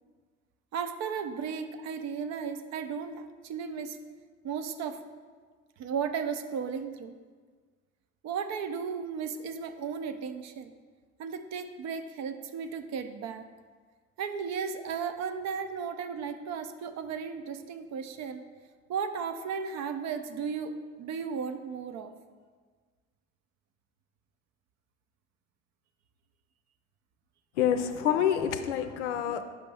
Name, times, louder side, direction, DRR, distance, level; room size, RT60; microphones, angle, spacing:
voice 1, 0.7-4.0 4.4-5.0 5.8-7.1 8.2-10.7 11.2-13.5 14.2-18.4 18.9-22.1, right 6 dB, 50° right, 9 dB, 0.6 m, -35 dB
voice 2, 27.6-29.4, left 9 dB, 80° left, 9 dB, 0.5 m, -27 dB
6.0 x 5.1 x 3.4 m, 1.5 s
hypercardioid pair, 60°, 34 cm